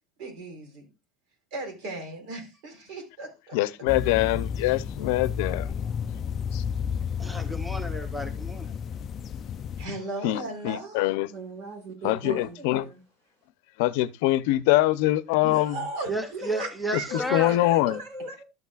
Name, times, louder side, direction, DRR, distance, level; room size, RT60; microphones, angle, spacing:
voice 1, 0.2-0.9 1.5-3.6 9.8-11.1 12.0-12.7 15.4-16.1 16.6-17.1 17.9-18.0, right 2 dB, 60° right, 3.7 m, -37 dB
voice 2, 3.5-5.7 6.5-6.6 10.2-11.3 12.0-12.9 13.8-15.8 17.1-18.0, left 16 dB, 80° left, 0.6 m, -24 dB
sound 1, 3.9-9.9, left 7 dB, 30° left, 0.4 m, -32 dB
voice 3, 7.2-8.7 16.1-17.6, right 1 dB, 5° right, 0.8 m, -32 dB
voice 4, 11.3-13.0 16.3-16.7 17.1-18.5, right 1 dB, 75° right, 5.1 m, -38 dB
12.0 x 8.2 x 2.3 m
cardioid pair, 170°, 0 cm